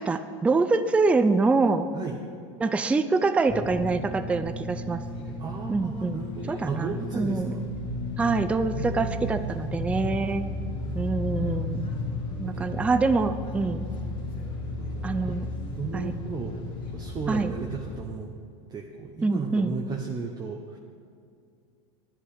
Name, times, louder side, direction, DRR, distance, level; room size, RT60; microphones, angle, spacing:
voice 1, 0.0-1.9 2.6-5.0 5.7-7.5 8.2-10.4 10.9-11.9 12.4-13.9 15.0-15.4 15.9-16.1 17.3-17.5 19.2-19.7, right 3 dB, 10° right, 10 dB, 0.4 m, -25 dB
sound 1, 3.5-18.0, left 2 dB, 30° left, 2.1 m, -34 dB
voice 2, 5.4-7.6 8.8-9.5 12.4-12.9 14.8-15.4 15.7-16.6 16.9-18.3 18.7-20.8, right 5 dB, 25° right, 1 dB, 0.9 m, -35 dB
10.5 x 10.0 x 5.0 m, 2.4 s
supercardioid pair, 125°, 16 cm